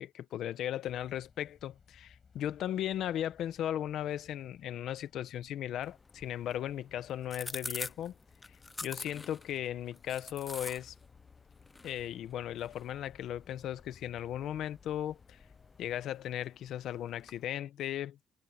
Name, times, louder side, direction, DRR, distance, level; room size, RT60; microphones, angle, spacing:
voice 1, 0.0-8.1 8.8-10.9 11.8-15.4 15.8-18.2, left 11 dB, 75° left, 1.2 m, -37 dB
sound 1, 0.8-16.1, left 6 dB, 45° left, 6.1 m, -62 dB
sound 2, 5.8-17.5, left 3 dB, 20° left, 0.7 m, -48 dB
cardioid pair, 90°, 0 cm